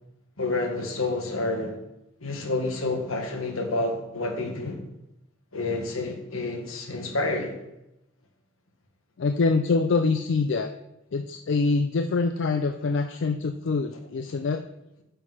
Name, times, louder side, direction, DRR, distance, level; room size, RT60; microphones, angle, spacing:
voice 1, 0.4-1.7 2.2-4.8 5.5-7.5, left 2 dB, 80° left, 3 dB, 1.6 m, -29 dB
voice 2, 9.2-10.7 11.1-14.6, left 4 dB, 60° left, 7 dB, 0.4 m, -25 dB
9.4 x 5.7 x 4.1 m, 0.89 s
head